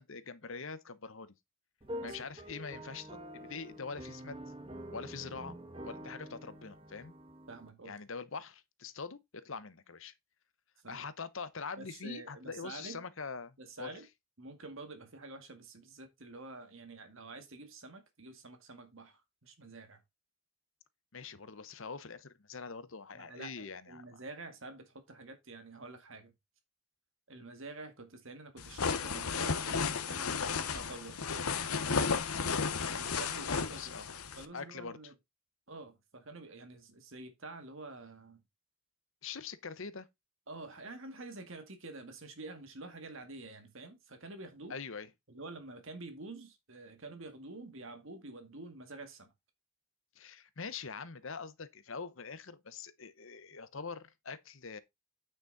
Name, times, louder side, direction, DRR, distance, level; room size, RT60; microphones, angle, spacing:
voice 1, 0.0-1.3 2.0-4.4 4.9-5.6 5.8-7.1 7.8-10.1 10.9-13.9 21.1-24.2 33.5-34.1 34.5-35.1 39.2-40.1 44.7-45.1 50.1-54.8, left 5 dB, 60° left, 0.9 m, -44 dB
sound 1, 1.8-7.7, equal, 25° right, 1.4 m, -46 dB
voice 2, 7.5-7.9 10.8-11.0 11.8-13.0 13.6-14.1 14.4-20.0 23.1-26.3 27.3-31.4 31.8-32.1 32.8-34.0 34.4-35.1 35.7-38.4 40.5-44.8 45.3-49.3, right 2 dB, 60° right, 2.0 m, -48 dB
sound 2, 28.6-34.5, left 5 dB, 85° left, 1.1 m, -33 dB
9.2 x 6.2 x 4.0 m
head